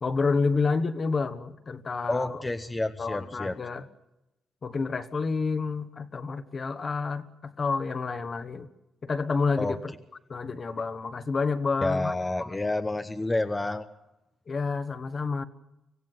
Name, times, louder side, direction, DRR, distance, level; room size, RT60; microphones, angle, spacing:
voice 1, 0.0-2.4 3.0-3.9 4.6-8.7 9.0-9.9 10.3-12.1 14.5-15.4, left 4 dB, 40° left, 10 dB, 1.4 m, -29 dB
voice 2, 2.1-3.6 9.6-9.8 11.8-13.9, left 2 dB, 15° left, 7 dB, 0.9 m, -29 dB
25.5 x 16.0 x 9.4 m, 0.96 s
cardioid pair, 125°, 0 cm